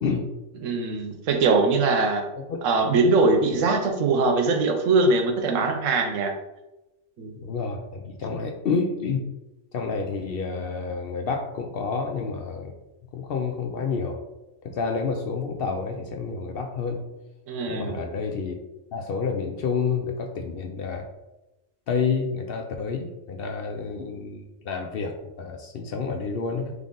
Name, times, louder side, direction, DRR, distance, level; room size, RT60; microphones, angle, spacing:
voice 1, 0.6-2.3 2.6-6.3 7.2-7.4 17.5-18.0, right 3 dB, 85° right, 5 dB, 1.1 m, -22 dB
voice 2, 7.4-9.3 9.7-12.7 13.1-14.2 14.6-17.0 17.7-18.6 18.9-21.1 21.9-26.7, left 5 dB, 60° left, 3 dB, 0.6 m, -29 dB
3.7 x 3.3 x 3.7 m, 1.0 s
omnidirectional pair, 1.3 m